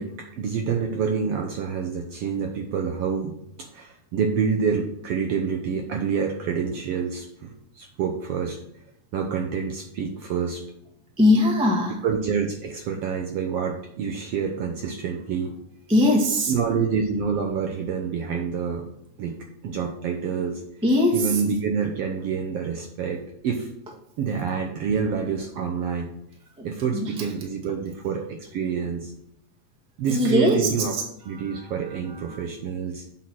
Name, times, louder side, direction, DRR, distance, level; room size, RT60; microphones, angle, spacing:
voice 1, 0.0-8.6 9.1-10.6 12.0-15.5 16.5-18.9 19.2-19.4 19.6-20.6 21.1-23.7 24.2-26.1 26.6-29.1 30.0-30.9 31.2-33.0, right 6 dB, 75° right, 3 dB, 1.5 m, -27 dB
voice 2, 11.2-12.0 15.9-16.5 20.8-21.4 26.9-27.1 30.1-30.7 31.3-31.7 32.1-32.4, left 1 dB, 5° right, -1 dB, 0.7 m, -21 dB
8.0 x 4.4 x 6.1 m, 0.79 s
omnidirectional pair, 3.4 m